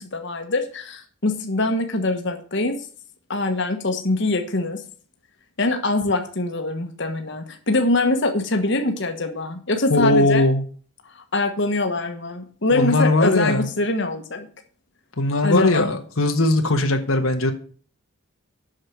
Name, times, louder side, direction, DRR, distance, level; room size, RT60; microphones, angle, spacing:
voice 1, 0.0-2.8 3.3-4.8 5.6-10.4 11.2-14.5 15.4-15.9, left 2 dB, 55° left, 5 dB, 1.3 m, -23 dB
voice 2, 9.9-10.6 12.7-13.7 15.2-17.5, left 2 dB, 75° left, 5 dB, 1.3 m, -19 dB
7.7 x 6.5 x 7.8 m, 0.43 s
head